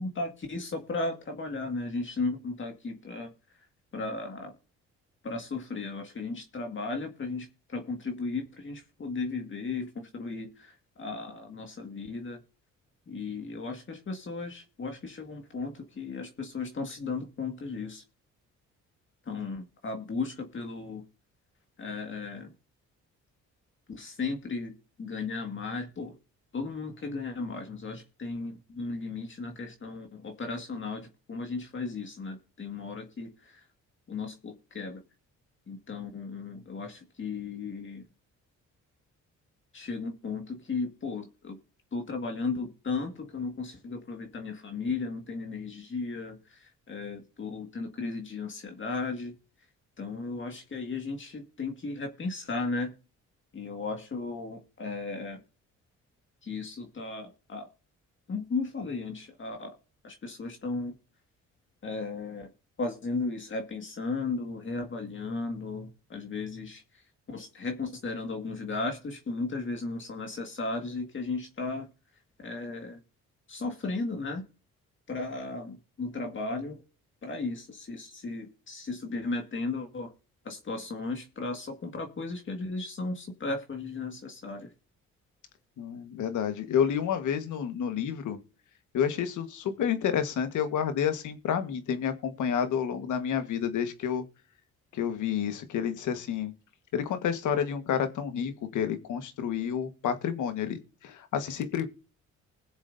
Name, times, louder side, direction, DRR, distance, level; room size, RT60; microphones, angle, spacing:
voice 1, 0.0-3.3 3.9-4.5 5.2-12.4 13.1-18.0 19.3-21.0 21.8-22.5 23.9-26.1 26.5-33.6 34.1-35.0 35.7-38.1 39.7-41.6 41.9-49.4 50.0-52.9 53.5-55.4 56.4-57.7 58.3-59.8 60.0-61.0 61.8-62.5 62.8-66.8 67.3-71.9 72.4-73.0 73.5-74.4 75.1-76.8 77.2-80.1 80.4-84.7, left 3 dB, 40° left, 4 dB, 1.9 m, -35 dB
voice 2, 85.8-88.4 88.9-94.2 94.9-96.5 96.9-101.9, left 8 dB, 75° left, 9 dB, 1.5 m, -29 dB
21.0 x 7.1 x 2.7 m, 0.35 s
cardioid pair, 90°, 30 cm